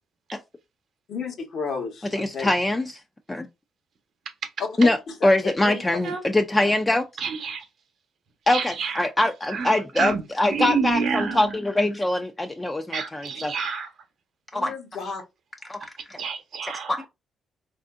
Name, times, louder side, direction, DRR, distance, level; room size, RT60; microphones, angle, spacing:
voice 1, 1.1-2.5 4.6-5.3 5.6-6.0 14.5-15.2, left 5 dB, 65° left, 1.0 m, -32 dB
voice 2, 2.1-2.9 3.3-3.5 4.8-5.0 5.2-7.1 8.5-13.5 14.5-14.7 16.9-17.1, left 1 dB, 15° left, 0.4 m, -23 dB
voice 3, 7.2-7.7 8.5-9.1 9.5-10.2 10.5-11.6 12.9-13.9 16.2-17.0, right 5 dB, 65° right, 0.8 m, -28 dB
3.4 x 2.5 x 2.3 m
cardioid pair, 90°, 0 cm